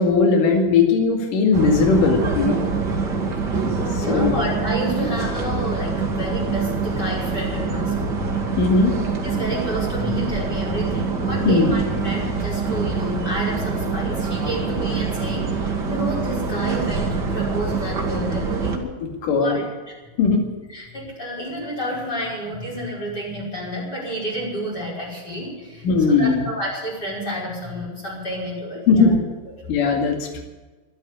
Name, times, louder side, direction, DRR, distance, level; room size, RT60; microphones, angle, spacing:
voice 1, 0.0-2.6 4.0-4.4 8.6-8.9 11.5-11.7 19.0-19.6 20.2-20.5 25.8-26.5 28.9-29.2 29.7-30.4, left 4 dB, 60° left, 3 dB, 3.7 m, -18 dB
sound 1, 1.5-18.8, right 4 dB, 40° right, 1.8 m, -25 dB
voice 2, 4.0-8.3 8.8-18.8 19.3-19.9 20.7-29.1 29.6-29.7, equal, 25° left, -4 dB, 5.8 m, -30 dB
13.0 x 12.0 x 8.5 m, 1.2 s
omnidirectional pair, 4.4 m